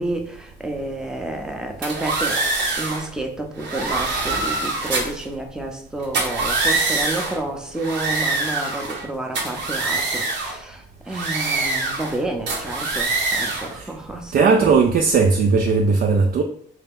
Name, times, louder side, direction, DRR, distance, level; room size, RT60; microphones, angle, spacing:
voice 1, 0.0-2.4 2.8-14.7, right 2 dB, 5° right, 0.6 m, -30 dB
sound 1, 1.8-3.0 3.6-5.2 6.0-7.4 7.8-9.0 9.3-10.6 11.1-12.2 12.5-13.7, right 3 dB, 65° right, 0.9 m, -24 dB
voice 2, 14.3-16.4, right 4 dB, 50° right, 0.4 m, -17 dB
3.3 x 2.7 x 3.6 m
cardioid pair, 90°, 20 cm